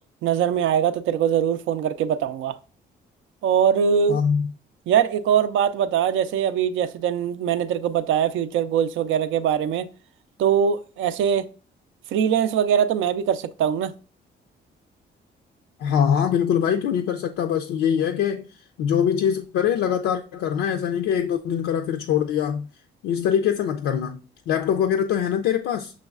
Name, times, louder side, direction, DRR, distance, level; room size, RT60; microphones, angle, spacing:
voice 1, 0.2-2.6 3.4-4.2 4.9-9.9 10.4-11.5 12.1-13.9, right 8 dB, 80° right, 0.4 m, -22 dB
voice 2, 4.1-4.5 15.8-18.5 18.8-22.7 23.0-24.2 24.5-25.9, left 8 dB, 85° left, 0.4 m, -23 dB
6.1 x 3.1 x 2.3 m
cardioid pair, 90°, 20 cm